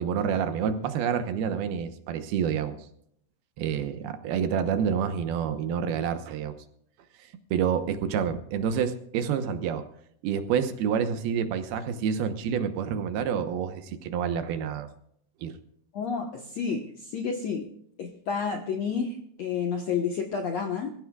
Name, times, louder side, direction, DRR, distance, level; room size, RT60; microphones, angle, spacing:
voice 1, 0.0-2.8 3.6-6.6 7.5-9.9 10.2-14.9 15.4-15.6, right 7 dB, 75° right, 8 dB, 2.8 m, -28 dB
voice 2, 15.9-17.6 18.0-20.9, left 6 dB, 70° left, 3 dB, 1.6 m, -30 dB
25.5 x 15.0 x 2.3 m, 0.70 s
omnidirectional pair, 4.7 m